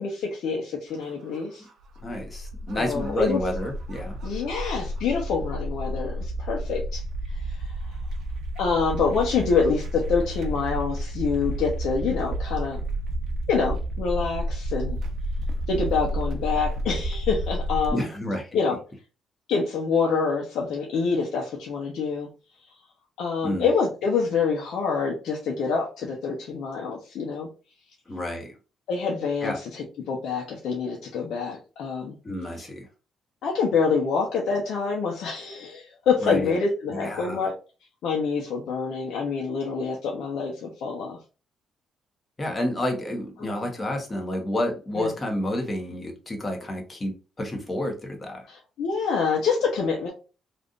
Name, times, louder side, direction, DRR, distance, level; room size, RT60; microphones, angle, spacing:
voice 1, 0.0-1.6 2.7-3.4 4.2-7.0 7.3-7.7 8.6-12.8 13.5-15.0 15.7-18.1 18.5-18.8 19.5-22.3 23.2-27.5 28.9-32.1 33.4-37.5 38.0-41.2 43.4-43.6 45.0-45.1 48.5-50.1, left 5 dB, 80° left, -1 dB, 0.8 m, -26 dB
sound 1, 0.9-17.9, right 1 dB, 70° right, 0.7 m, -31 dB
voice 2, 2.0-4.2 17.9-18.5 23.4-23.7 28.1-28.5 29.4-29.6 32.2-32.9 36.2-36.6 36.9-37.5 42.4-48.5, left 1 dB, 25° left, 2 dB, 1.2 m, -30 dB
3.3 x 2.6 x 2.5 m, 0.33 s
cardioid pair, 90°, 0 cm